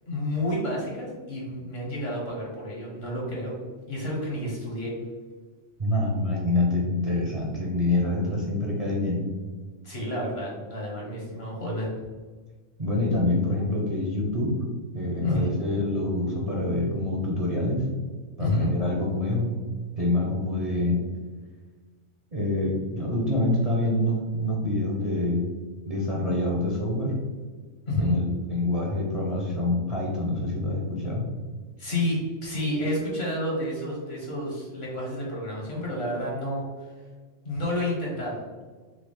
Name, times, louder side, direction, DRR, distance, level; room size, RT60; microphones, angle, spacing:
voice 1, 0.1-3.6 3.9-4.9 9.8-11.9 15.2-15.5 18.4-18.7 27.9-28.2 31.8-36.6 37.4-38.4, left 1 dB, 50° left, -4 dB, 1.8 m, -30 dB
voice 2, 5.8-9.2 12.8-14.5 14.9-17.8 18.4-19.5 20.0-21.0 22.3-25.4 25.9-27.2 28.0-31.3, left 2 dB, 35° right, -4 dB, 0.8 m, -26 dB
6.0 x 2.4 x 3.6 m, 1.4 s
omnidirectional pair, 1.3 m